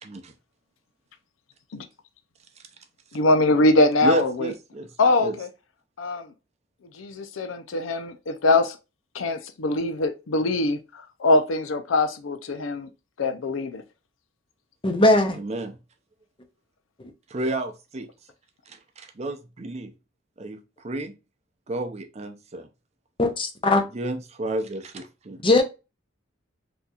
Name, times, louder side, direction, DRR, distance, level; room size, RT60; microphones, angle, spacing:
voice 1, 0.0-0.3 4.0-4.9 5.2-5.3 15.3-15.8 17.3-18.1 18.7-19.9 20.4-20.6 20.8-21.1 21.7-22.7 23.9-25.4, right 2 dB, 35° right, 0.5 m, -31 dB
voice 2, 3.1-4.5 5.0-5.5 6.0-6.3 6.9-8.8 9.1-12.9 13.2-13.8, left 2 dB, 90° left, 0.5 m, -23 dB
voice 3, 14.8-15.4 17.0-17.1 23.2-23.8 25.4-25.6, left 2 dB, 25° left, 0.6 m, -19 dB
4.0 x 2.8 x 2.4 m
head